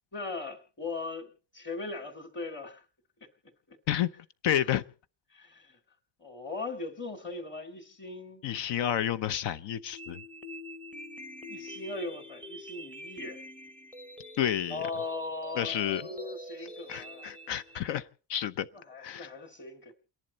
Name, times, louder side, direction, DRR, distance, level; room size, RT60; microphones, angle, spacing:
voice 1, 0.1-2.8 3.7-3.8 5.3-5.8 6.2-8.4 11.5-13.4 14.7-17.3 18.7-19.9, left 3 dB, 25° left, 2.3 m, -39 dB
voice 2, 4.4-4.8 8.4-10.2 14.4-14.8 15.6-16.1 16.9-18.7 19.0-19.3, left 10 dB, 70° left, 0.9 m, -30 dB
sound 1, 9.9-17.9, equal, 5° left, 0.7 m, -45 dB
29.5 x 11.0 x 4.1 m
cardioid pair, 165°, 44 cm